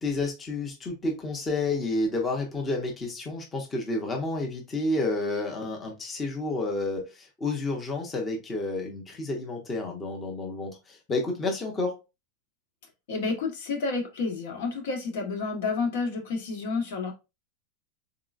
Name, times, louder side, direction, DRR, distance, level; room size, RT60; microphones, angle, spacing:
voice 1, 0.0-12.0, left 2 dB, 15° left, 0.6 m, -30 dB
voice 2, 13.1-17.1, left 4 dB, 70° left, 1.3 m, -30 dB
3.8 x 3.6 x 2.4 m
supercardioid pair, 170°, 0 cm